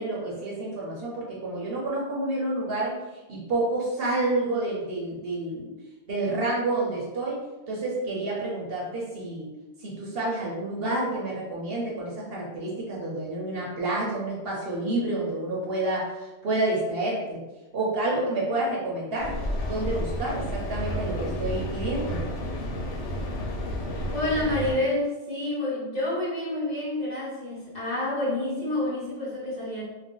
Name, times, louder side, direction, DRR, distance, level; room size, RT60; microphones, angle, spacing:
voice 1, 0.0-2.9 3.3-5.7 6.1-7.4 7.7-9.5 9.8-17.4 17.7-19.3 19.7-22.2, right 2 dB, 60° right, -4 dB, 0.9 m, -29 dB
Mechanical fan, 19.2-24.7, equal, 85° left, 0.9 m, -31 dB
voice 2, 24.1-29.8, left 1 dB, 40° left, -8 dB, 1.0 m, -28 dB
2.5 x 2.2 x 3.6 m, 1.1 s
omnidirectional pair, 1.2 m